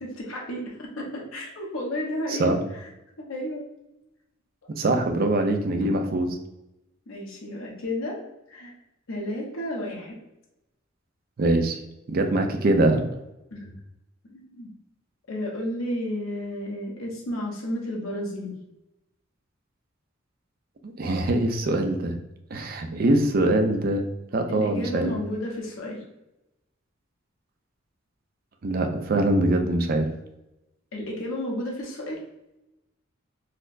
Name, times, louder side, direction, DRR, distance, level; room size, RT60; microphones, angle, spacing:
voice 1, 0.0-2.5 3.2-3.7 7.1-8.2 8.5-8.7 9.1-10.1 13.5-13.8 14.2-14.7 15.3-18.5 24.5-26.0 30.9-32.2, left 1 dB, 90° left, -2 dB, 0.8 m, -32 dB
voice 2, 2.3-2.6 4.7-6.4 11.4-11.8 12.1-13.0 20.8-22.2 22.5-24.0 24.3-25.1 28.6-30.1, right 2 dB, 45° right, 5 dB, 0.4 m, -23 dB
4.1 x 2.0 x 2.5 m, 0.92 s
head